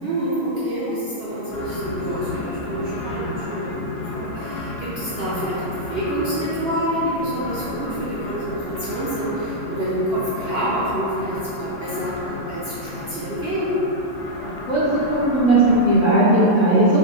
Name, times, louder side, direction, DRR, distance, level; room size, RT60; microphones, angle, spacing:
voice 1, 0.0-13.7, right 1 dB, 50° right, -10 dB, 0.8 m, -27 dB
sound 1, 1.5-16.0, left 2 dB, 75° left, 1.2 m, -33 dB
voice 2, 14.4-14.8 15.2-17.0, right 1 dB, 45° left, -11 dB, 0.7 m, -17 dB
3.6 x 3.1 x 4.1 m, 2.9 s
omnidirectional pair, 1.8 m